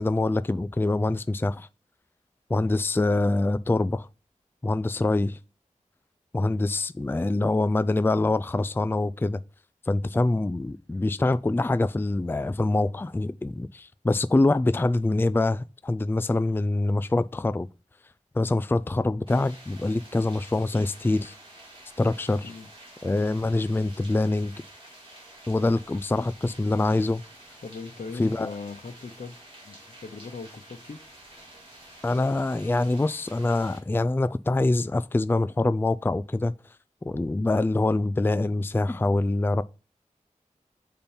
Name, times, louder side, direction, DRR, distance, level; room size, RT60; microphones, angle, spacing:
voice 1, 0.0-1.7 2.5-4.1 4.6-5.4 6.3-9.4 9.9-17.7 18.3-21.3 22.0-22.5 23.0-24.5 25.5-27.2 28.2-28.5 32.0-36.5 37.1-39.6, left 2 dB, 15° left, 0.4 m, -25 dB
sound 1, 19.3-33.8, right 1 dB, 40° right, 3.4 m, -49 dB
voice 2, 27.6-29.3 29.6-31.0, left 4 dB, 80° left, 0.9 m, -39 dB
6.9 x 5.2 x 4.4 m
wide cardioid pair, 55°, 13 cm